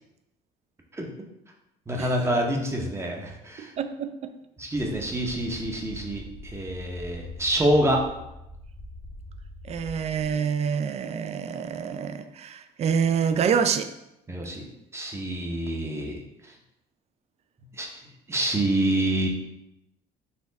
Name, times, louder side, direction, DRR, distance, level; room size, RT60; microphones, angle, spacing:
voice 1, 1.9-3.7 4.6-8.0 14.3-14.6 14.9-16.2 17.8-17.9 18.3-19.3, right 1 dB, 15° right, 1 dB, 0.7 m, -26 dB
voice 2, 3.6-4.3 9.6-13.9, right 7 dB, 40° right, 9 dB, 0.3 m, -27 dB
sound 1, 4.7-10.3, left 1 dB, 65° left, 0.7 m, -43 dB
4.2 x 2.3 x 3.9 m, 0.87 s
cardioid pair, 110°, 17 cm